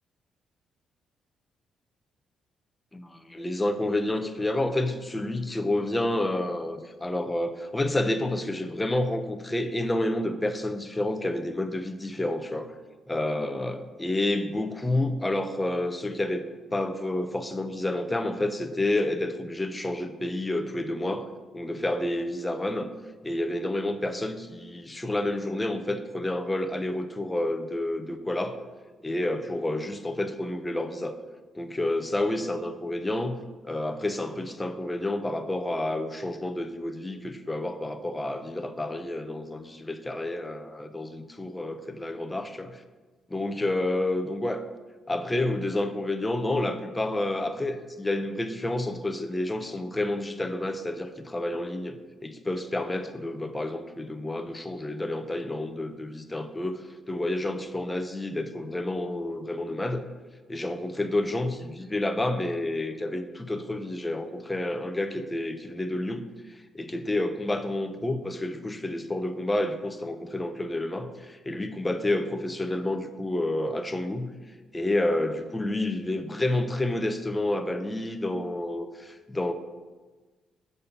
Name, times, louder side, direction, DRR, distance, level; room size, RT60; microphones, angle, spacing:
voice 1, 2.9-12.7 13.1-21.3 21.5-22.9 23.2-28.6 29.0-31.2 31.6-42.8 43.3-44.6 45.1-52.0 52.2-60.0 60.5-66.2 66.7-74.3 74.7-79.5, left 1 dB, 15° left, 8 dB, 0.6 m, -29 dB
6.8 x 5.4 x 5.8 m, 1.3 s
cardioid pair, 105°, 0 cm